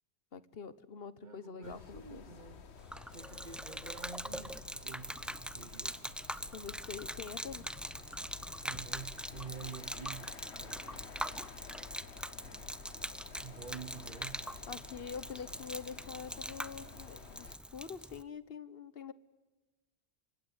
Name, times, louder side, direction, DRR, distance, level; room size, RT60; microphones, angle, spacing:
voice 1, 0.3-2.2 6.5-7.7 14.7-19.1, left 6 dB, 65° left, 15 dB, 1.3 m, -45 dB
voice 2, 1.2-2.7 3.0-6.2 8.6-11.2 12.4-13.0 13.4-14.6, right 6 dB, 45° right, 10 dB, 1.3 m, -49 dB
sound 1, 1.6-17.6, left 6 dB, 85° left, 1.4 m, -52 dB
Gurgling / Liquid, 2.8-18.2, equal, ahead, 0.7 m, -43 dB
28.0 x 25.0 x 8.2 m, 1.2 s
omnidirectional pair, 1.1 m